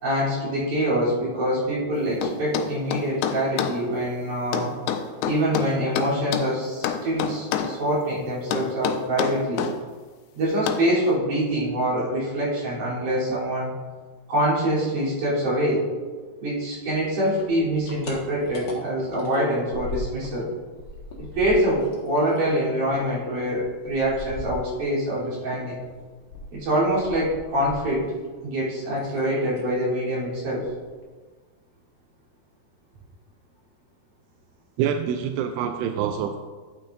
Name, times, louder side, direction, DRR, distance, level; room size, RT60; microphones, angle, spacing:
voice 1, 0.0-4.7 5.2-9.7 10.3-13.7 14.3-15.8 16.4-20.5 21.2-25.7 26.5-28.1 28.4-30.7, right 1 dB, 55° right, -9 dB, 4.7 m, -25 dB
sound 1, 2.2-3.8 4.5-6.5 6.8-7.8 8.5-9.8 10.7-10.9, left 9 dB, 90° left, 2.6 m, -27 dB
sound 2, 17.4-20.4 20.7-25.2 25.5-28.3 28.5-29.2 29.5-29.8 30.1-30.2 30.5-31.0, left 2 dB, 50° left, 1.7 m, -39 dB
voice 2, 34.8-36.4, right 8 dB, 90° right, 6 dB, 2.6 m, -26 dB
13.0 x 8.8 x 2.6 m, 1.4 s
omnidirectional pair, 4.6 m